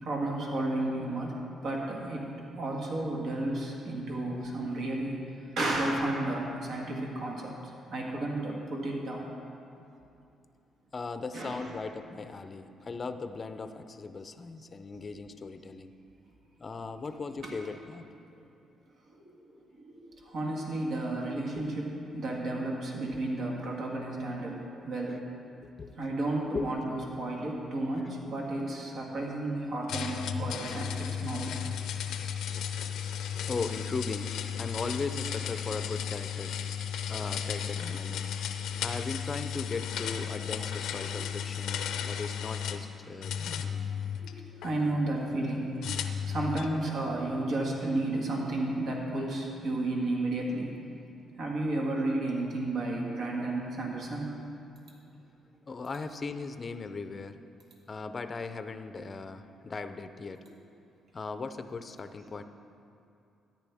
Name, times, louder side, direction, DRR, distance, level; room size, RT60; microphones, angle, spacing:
voice 1, 0.0-2.3 2.6-5.2 5.6-7.5 7.9-9.3 11.3-11.7 17.4-17.5 19.2-19.3 19.7-20.0 20.2-25.2 26.0-31.5 41.1-41.2 44.2-50.7 51.4-54.3, right 2 dB, 65° right, -2 dB, 1.8 m, -32 dB
voice 2, 10.9-15.9 16.6-18.1 21.6-21.7 23.1-23.2 25.6-26.0 26.5-26.7 28.2-28.3 33.5-36.6 37.1-38.2 38.8-43.9 55.7-57.4 57.9-60.4 61.1-62.4, left 4 dB, 35° left, 9 dB, 0.5 m, -38 dB
sound 1, 29.9-42.8 43.2-44.7 45.8-46.8, left 8 dB, 80° left, 0.6 m, -34 dB
13.5 x 10.0 x 3.5 m, 2.6 s
cardioid pair, 90°, 0 cm